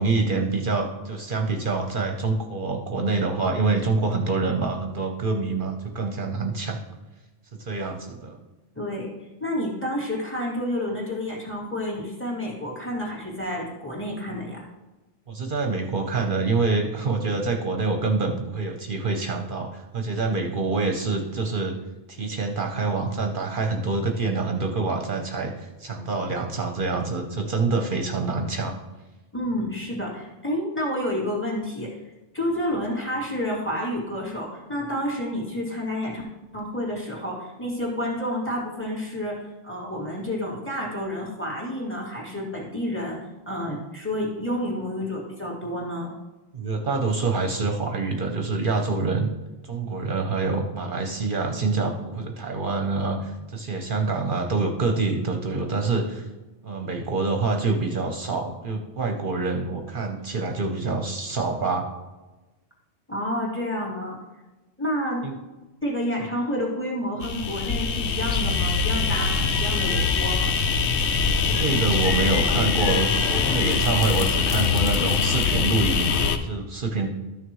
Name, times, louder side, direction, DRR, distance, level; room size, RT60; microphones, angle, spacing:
voice 1, 0.0-6.8 7.5-8.4 15.3-21.7 22.1-28.8 46.5-49.3 49.6-56.3 56.6-61.9 65.2-65.4 71.4-77.1, right 3 dB, 50° right, 3 dB, 0.9 m, -26 dB
voice 2, 8.7-9.1 9.4-14.7 29.3-31.9 32.3-36.2 36.5-43.2 43.5-46.1 63.1-64.2 64.8-65.3 65.8-70.6, left 1 dB, 10° left, -4 dB, 2.5 m, -29 dB
sound 1, 67.2-76.4, left 5 dB, 75° left, 0.9 m, -23 dB
13.0 x 6.4 x 3.1 m, 1.1 s
omnidirectional pair, 1.2 m